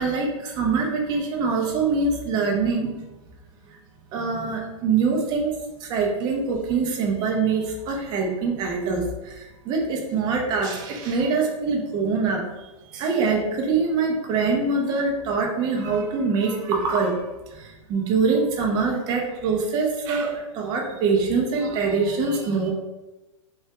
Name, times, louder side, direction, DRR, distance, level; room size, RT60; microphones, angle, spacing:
voice 1, 0.0-3.0 4.1-12.4 12.9-22.7, right 4 dB, 25° right, 0 dB, 0.4 m, -24 dB
2.2 x 2.1 x 2.8 m, 1.1 s
hypercardioid pair, 145°, 17 cm